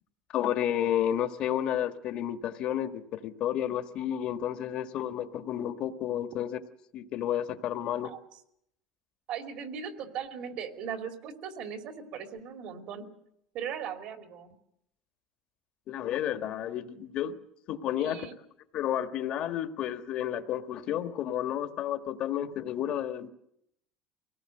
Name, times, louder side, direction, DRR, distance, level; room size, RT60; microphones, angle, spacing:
voice 1, 0.3-6.6 6.9-8.1 15.9-17.3 17.7-18.3 18.7-23.3, left 10 dB, 50° left, 8 dB, 1.5 m, -31 dB
voice 2, 9.3-13.1 13.5-14.6 18.0-18.3, right 7 dB, 55° right, 6 dB, 2.8 m, -38 dB
23.5 x 18.0 x 7.8 m, 0.76 s
cardioid pair, 150°, 2 cm